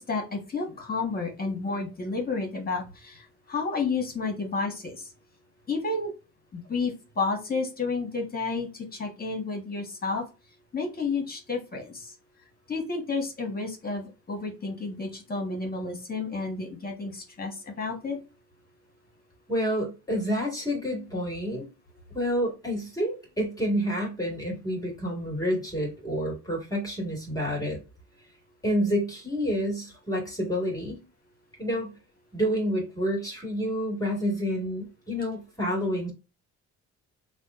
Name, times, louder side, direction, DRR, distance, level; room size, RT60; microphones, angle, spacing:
voice 1, 0.0-5.1 5.7-6.1 6.5-10.2 10.7-12.1 12.7-18.2, left 4 dB, 30° left, 1.6 m, -31 dB
voice 2, 19.5-21.7 22.1-27.8 28.6-31.0 31.6-31.9 32.3-36.1, equal, 10° left, 2.0 m, -29 dB
3.4 x 2.5 x 3.6 m
cardioid pair, 90°, 30 cm